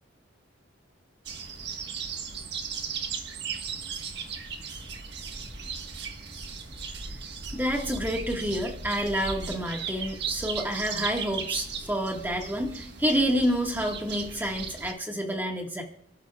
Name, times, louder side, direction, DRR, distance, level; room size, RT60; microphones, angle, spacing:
sound 1, 1.2-14.9, right 5 dB, 55° right, 1.6 m, -36 dB
voice 1, 7.5-15.8, equal, 10° right, 1 dB, 1.7 m, -28 dB
29.0 x 12.5 x 2.4 m, 0.74 s
head